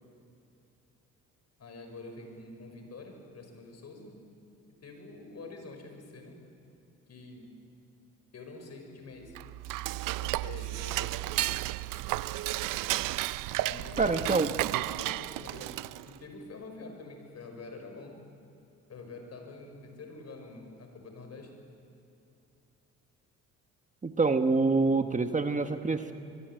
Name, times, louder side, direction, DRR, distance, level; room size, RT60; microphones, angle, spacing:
voice 1, 1.6-4.2 4.7-6.4 7.1-7.5 8.3-9.4 10.2-11.4 13.5-14.1 14.6-15.8 16.0-18.2 18.9-21.6, left 3 dB, 55° left, 4 dB, 6.0 m, -46 dB
Dishes pots and pans / Cutlery silverware, 9.3-16.2, right 17 dB, 80° right, 0.6 m, -33 dB
voice 2, 14.0-14.5 24.0-26.1, right 3 dB, 25° right, 7 dB, 1.3 m, -26 dB
23.5 x 23.0 x 9.2 m, 2.7 s
cardioid pair, 80°, 32 cm